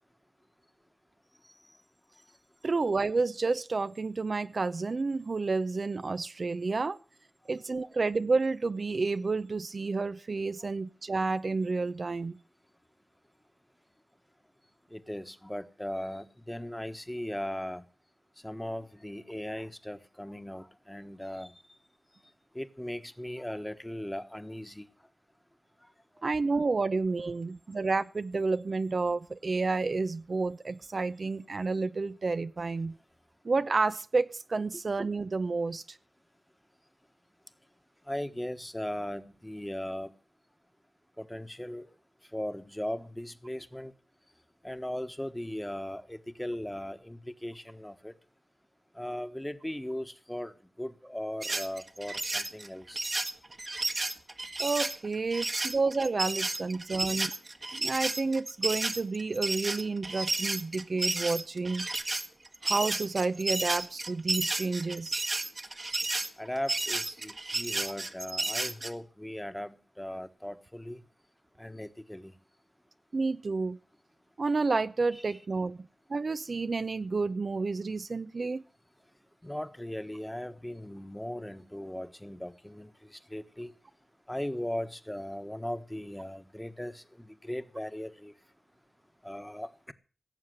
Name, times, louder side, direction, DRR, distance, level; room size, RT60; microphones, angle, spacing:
voice 1, 2.6-7.0 7.5-12.4 26.2-33.0 33.4-36.0 54.6-57.3 57.7-61.9 62.6-65.2 73.1-73.8 74.4-78.6, right 3 dB, 65° right, 0.7 m, -30 dB
voice 2, 14.9-17.8 18.4-21.6 22.5-24.8 38.1-40.1 41.2-41.9 42.3-43.9 44.6-48.1 48.9-53.1 55.3-55.4 66.4-71.0 71.6-72.3 75.1-75.4 79.4-83.7 84.3-88.3 89.2-89.9, left 1 dB, 15° left, 1.3 m, -38 dB
sound 1, 51.4-68.9, right 2 dB, 45° right, 1.4 m, -32 dB
17.0 x 7.3 x 7.8 m
cardioid pair, 40°, 0 cm